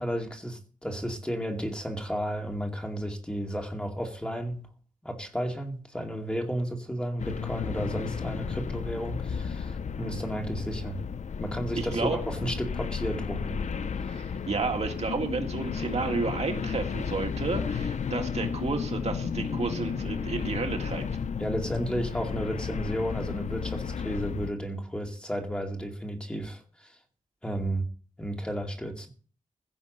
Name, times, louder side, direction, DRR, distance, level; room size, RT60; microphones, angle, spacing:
voice 1, 0.0-4.6 5.0-11.0 11.4-13.6 21.4-26.9 27.4-27.9 28.2-29.1, equal, 5° left, 2.4 m, -33 dB
sound 1, 7.2-24.5, left 6 dB, 60° left, 0.6 m, -33 dB
voice 2, 11.8-12.2 14.1-21.1, right 4 dB, 55° right, 2.0 m, -31 dB
16.0 x 6.3 x 7.9 m
wide cardioid pair, 165°, 13 cm